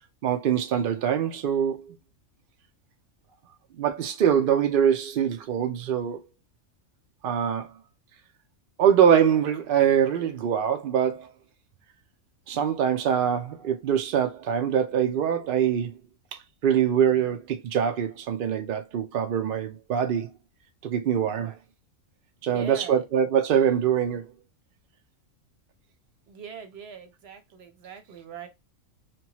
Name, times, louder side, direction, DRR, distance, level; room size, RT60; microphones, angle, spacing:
voice 1, 0.2-2.0 3.8-6.2 7.2-7.7 8.8-11.3 12.5-15.9 16.6-20.3 20.8-21.5 22.4-24.3, right 8 dB, 80° right, 0.4 m, -23 dB
voice 2, 22.5-23.0 26.3-28.5, right 7 dB, 55° right, 0.8 m, -41 dB
2.9 x 2.2 x 2.8 m
omnidirectional pair, 1.5 m